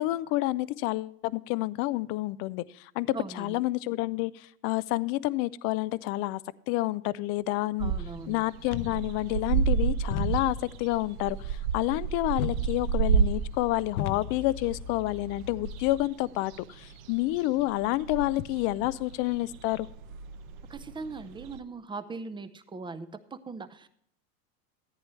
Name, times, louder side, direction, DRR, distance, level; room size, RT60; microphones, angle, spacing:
voice 1, 0.0-6.4 6.7-7.9 8.3-19.9, left 18 dB, 35° left, 19 dB, 0.4 m, -29 dB
voice 2, 3.1-3.6 7.8-8.4 20.7-23.9, right 4 dB, 10° right, 12 dB, 0.6 m, -40 dB
sound 1, 7.8-21.6, right 7 dB, 60° right, 0.9 m, -31 dB
sound 2, 8.6-16.0, left 11 dB, 70° left, 0.7 m, -39 dB
14.0 x 8.9 x 3.1 m, 0.68 s
hypercardioid pair, 105°, 46 cm